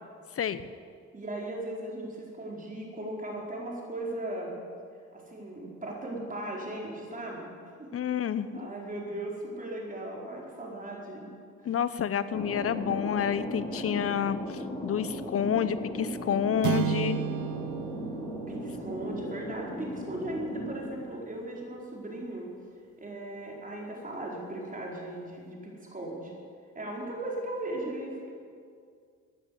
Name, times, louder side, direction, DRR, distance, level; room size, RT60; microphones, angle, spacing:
voice 1, 1.1-4.6 5.1-7.5 7.8-7.9 8.5-11.3 11.7-11.8 18.5-22.5 23.0-26.3 26.7-28.3, right 1 dB, 25° right, -2 dB, 4.6 m, -37 dB
voice 2, 7.9-8.7 11.7-14.4 14.8-17.2, left 8 dB, 50° left, 14 dB, 0.9 m, -29 dB
Thunder, 12.3-21.6, equal, 20° left, 4.8 m, -38 dB
sound 1, 16.6-21.1, right 13 dB, 75° right, 0.6 m, -35 dB
15.5 x 10.0 x 8.0 m, 2.2 s
cardioid pair, 90°, 30 cm